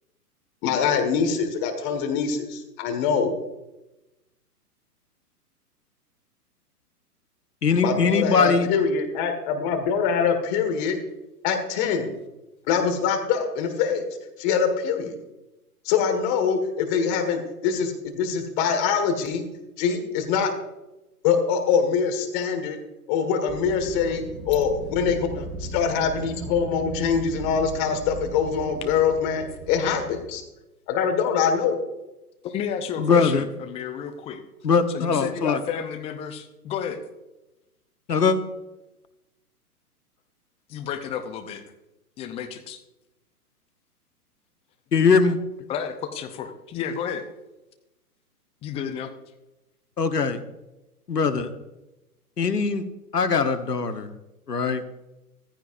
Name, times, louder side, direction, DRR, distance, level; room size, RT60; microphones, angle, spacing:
voice 1, 0.6-3.3 7.8-11.0 11.4-12.1 12.7-14.0 14.4-15.2 15.9-19.5 19.8-20.5 21.2-22.8 23.1-30.4 30.9-31.8, left 6 dB, 30° left, 6 dB, 1.8 m, -24 dB
voice 2, 7.6-8.7 33.0-33.4 34.6-35.6 38.1-38.4 44.9-45.4 50.0-50.4 51.1-51.5 52.4-52.8 53.1-54.1 54.5-54.8, left 5 dB, 80° left, 10 dB, 1.2 m, -21 dB
Wind, 23.5-30.4, right 3 dB, 15° right, 3.0 m, -37 dB
voice 3, 32.4-34.4 34.9-37.0 40.7-41.6 42.2-42.8 45.7-47.3 48.6-49.1, left 8 dB, 15° left, 7 dB, 0.7 m, -31 dB
14.5 x 14.0 x 2.6 m, 0.97 s
figure-of-eight pair, 120°, 47 cm